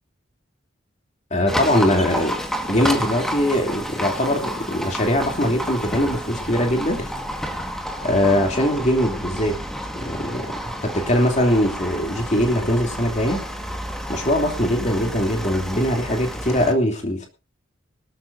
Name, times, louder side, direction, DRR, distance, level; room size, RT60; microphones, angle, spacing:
voice 1, 1.3-2.3 2.7-7.1 8.0-9.6 9.9-13.4 14.1-17.3, left 1 dB, 35° left, 3 dB, 3.0 m, -21 dB
Livestock farm animals working animals, 1.5-16.7, equal, ahead, 1.7 m, -30 dB
22.0 x 13.0 x 2.7 m, 0.30 s
head